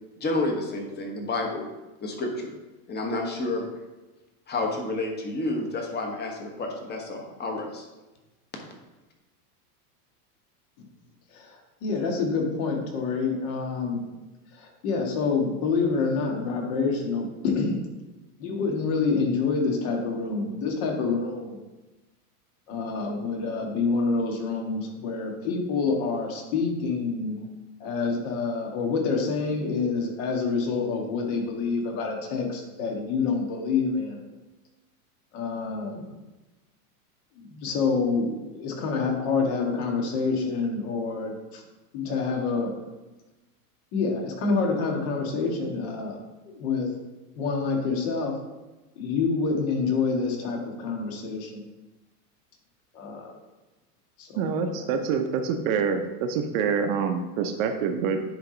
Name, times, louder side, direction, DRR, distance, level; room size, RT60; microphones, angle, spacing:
voice 1, 0.2-1.7 2.0-2.5 2.9-3.7 4.5-7.8, left 2 dB, 20° left, 2 dB, 1.2 m, -30 dB
voice 2, 11.3-14.0 14.5-17.8 18.4-21.6 22.7-27.4 27.8-34.2 35.3-36.1 37.4-41.6 41.9-42.8 43.9-46.2 46.5-46.9 47.4-48.3 48.9-51.6 52.9-53.3 54.2-54.8, left 4 dB, 55° left, 1 dB, 1.8 m, -27 dB
voice 3, 54.3-58.2, right 6 dB, 55° right, 6 dB, 0.8 m, -26 dB
10.0 x 3.4 x 3.9 m, 1.1 s
supercardioid pair, 135°, 47 cm